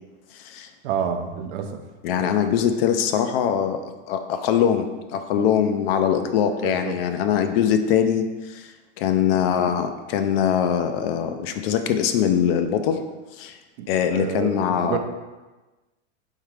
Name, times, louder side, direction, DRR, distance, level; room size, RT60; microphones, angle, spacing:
voice 1, 0.8-1.8 2.1-2.3 5.3-5.5 6.6-7.0 13.8-15.0, right 8 dB, 60° right, 6 dB, 0.6 m, -29 dB
voice 2, 2.0-8.7 9.0-13.0 13.4-13.6 13.9-15.0, left 8 dB, 55° left, 8 dB, 0.4 m, -22 dB
3.6 x 3.6 x 3.2 m, 1.2 s
supercardioid pair, 135°, 35 cm